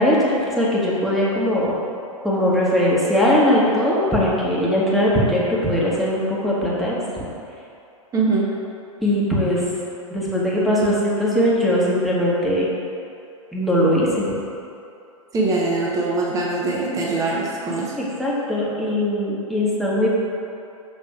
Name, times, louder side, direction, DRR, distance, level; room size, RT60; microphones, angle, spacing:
voice 1, 0.0-1.7 2.2-6.9 9.0-9.6 10.1-12.7 13.5-14.2 18.0-20.1, equal, ahead, -7 dB, 1.3 m, -20 dB
voice 2, 8.1-8.5 15.3-17.9, right 3 dB, 20° right, -3 dB, 0.9 m, -22 dB
6.4 x 3.2 x 4.8 m, 2.6 s
hypercardioid pair, 105°, 17 cm